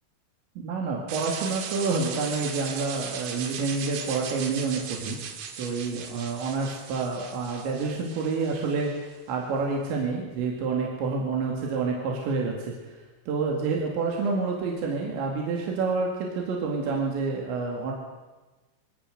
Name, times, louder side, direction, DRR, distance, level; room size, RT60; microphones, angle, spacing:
voice 1, 0.6-5.2 5.6-13.0 13.3-17.9, right 4 dB, 65° right, -1 dB, 4.2 m, -28 dB
sound 1, 1.1-9.1, right 7 dB, 85° right, 4.6 m, -38 dB
22.5 x 17.5 x 6.7 m, 1.2 s
omnidirectional pair, 6.0 m